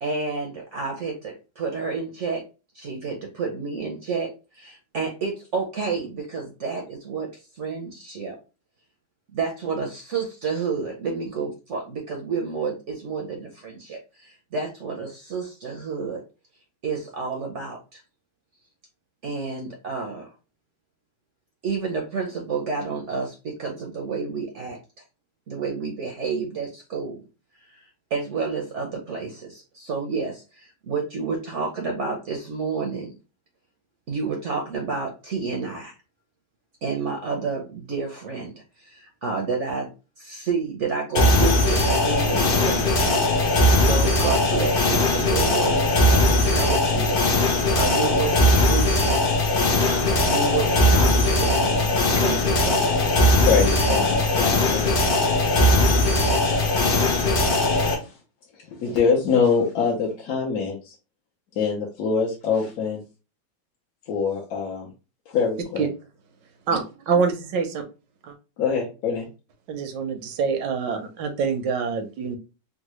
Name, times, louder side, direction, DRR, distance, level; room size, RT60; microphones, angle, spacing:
voice 1, 0.0-2.4 2.7-7.3 7.5-8.4 9.3-16.2 16.8-18.0 19.2-20.3 21.6-24.8 25.5-27.2 27.6-27.8 28.1-33.1 34.1-35.9 36.8-39.9 40.2-43.2 43.8-47.2 47.7-49.1 49.8-53.1, right 4 dB, 60° right, 1 dB, 0.7 m, -30 dB
sound 1, 41.1-57.9, left 1 dB, 80° left, 0.4 m, -19 dB
voice 2, 53.4-55.0 57.9-58.2 58.6-60.9 61.5-63.0 64.1-64.9 65.3-65.9 68.6-69.3, left 5 dB, 65° left, -2 dB, 1.1 m, -24 dB
voice 3, 66.7-67.8 68.2-68.3 69.7-72.4, right 5 dB, 80° right, 7 dB, 1.3 m, -25 dB
3.7 x 2.2 x 2.9 m, 0.31 s
omnidirectional pair, 1.9 m